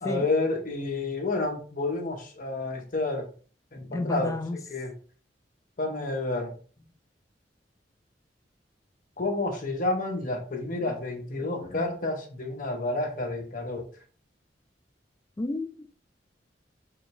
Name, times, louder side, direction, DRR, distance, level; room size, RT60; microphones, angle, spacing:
voice 1, 0.0-3.3 3.7-4.9 5.8-6.6 9.2-13.9, left 2 dB, 50° left, 1.0 m, -30 dB
voice 2, 3.9-4.6 15.4-15.9, left 2 dB, 20° left, 0.3 m, -31 dB
3.8 x 3.3 x 3.0 m
head